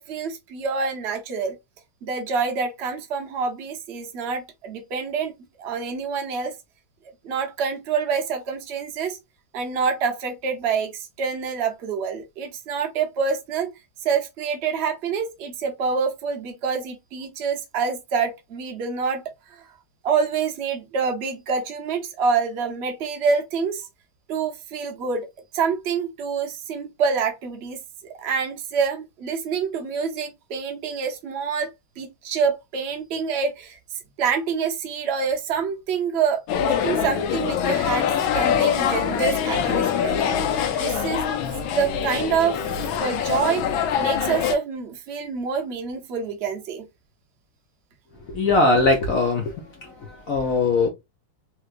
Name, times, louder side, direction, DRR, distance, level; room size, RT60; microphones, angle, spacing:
voice 1, 0.0-1.5 2.0-5.3 5.6-6.5 7.2-9.2 9.5-13.7 14.0-19.2 19.5-19.6 20.0-23.9 24.3-25.3 25.5-27.8 28.1-33.8 34.2-41.2 41.7-42.6 43.0-46.9, right 5 dB, 85° right, 0.5 m, -26 dB
sound 1, 36.5-44.5, left 8 dB, 90° left, 1.4 m, -24 dB
voice 2, 48.3-49.5 49.8-50.9, left 3 dB, 70° left, 0.8 m, -21 dB
3.3 x 3.0 x 2.4 m
omnidirectional pair, 2.1 m